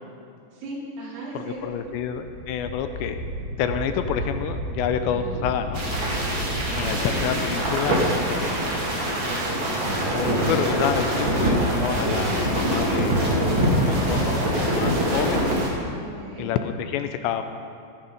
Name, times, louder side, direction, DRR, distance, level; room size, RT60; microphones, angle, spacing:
voice 1, 0.5-1.6 5.1-5.4 7.0-7.3 12.2-12.6 16.0-16.5, right 2 dB, 85° right, -5 dB, 5.4 m, -38 dB
voice 2, 1.4-5.8 6.8-8.8 10.1-13.4 13.8-15.5 16.4-17.4, left 8 dB, 85° left, 8 dB, 2.8 m, -28 dB
Wind, 1.7-8.0, equal, 40° left, 4.0 m, -33 dB
sound 1, 5.7-15.7, right 1 dB, 35° right, 2.0 m, -24 dB
18.0 x 9.9 x 5.3 m, 2.4 s
omnidirectional pair, 5.2 m